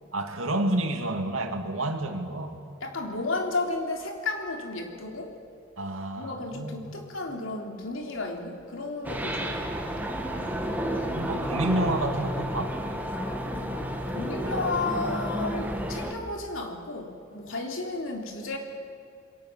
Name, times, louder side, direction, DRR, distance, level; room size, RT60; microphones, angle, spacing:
voice 1, 0.1-2.6 5.8-6.9 11.1-12.8, right 1 dB, 80° right, 4 dB, 2.5 m, -29 dB
voice 2, 2.8-5.4 6.2-9.9 14.1-18.6, left 3 dB, 70° left, 2 dB, 3.4 m, -33 dB
sound 1, 9.0-16.1, equal, 10° right, 1.9 m, -31 dB
28.0 x 22.5 x 7.5 m, 2.3 s
head